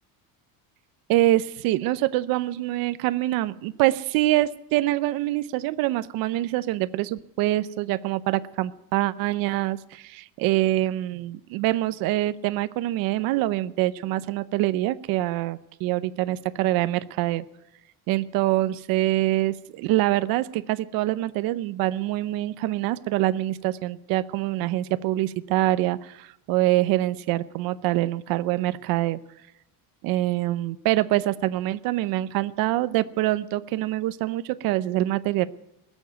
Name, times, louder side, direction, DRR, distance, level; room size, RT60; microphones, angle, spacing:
voice 1, 1.1-17.4 18.1-29.2 30.0-35.5, right 16 dB, 60° right, 14 dB, 0.7 m, -25 dB
19.5 x 7.3 x 9.1 m, 0.87 s
cardioid pair, 160°, 39 cm